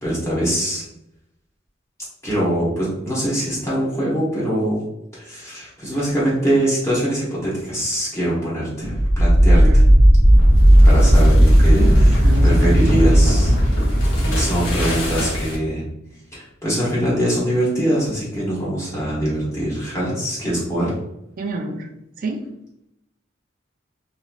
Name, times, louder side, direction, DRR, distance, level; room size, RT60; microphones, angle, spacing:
voice 1, 0.0-0.8 2.2-4.8 5.1-9.6 10.8-11.8 12.4-13.5 14.2-15.8 16.3-20.9, right 1 dB, 15° left, -8 dB, 1.1 m, -23 dB
sound 1, 8.9-15.7, equal, 75° left, 0.9 m, -14 dB
voice 2, 11.6-12.8 21.4-21.9 22.2-22.4, right 2 dB, 45° right, 3 dB, 0.4 m, -28 dB
2.9 x 2.7 x 2.4 m, 0.82 s
head